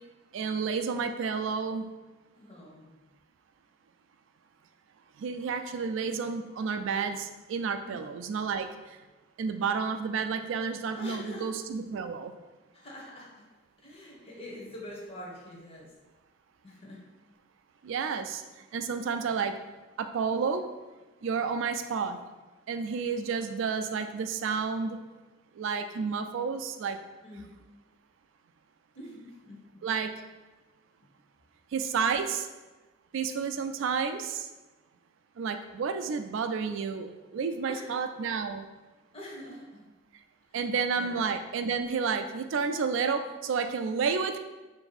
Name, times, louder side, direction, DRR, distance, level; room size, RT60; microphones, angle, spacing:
voice 1, 0.3-1.8 5.2-9.0 9.4-12.3 17.8-19.5 20.0-20.6 21.2-22.2 22.7-25.0 25.5-27.0 29.8-30.2 31.7-32.4 33.1-34.5 35.4-38.7 40.5-44.4, right 5 dB, 65° right, 8 dB, 0.3 m, -31 dB
voice 2, 2.4-3.0 7.8-8.1 10.9-11.5 12.7-13.5 13.8-15.9 16.6-17.0 27.2-27.5 28.9-29.8 32.1-32.3 37.7-37.9 39.1-39.9 40.5-41.2, equal, 30° left, -2 dB, 0.8 m, -45 dB
3.4 x 2.6 x 4.0 m, 1.2 s
head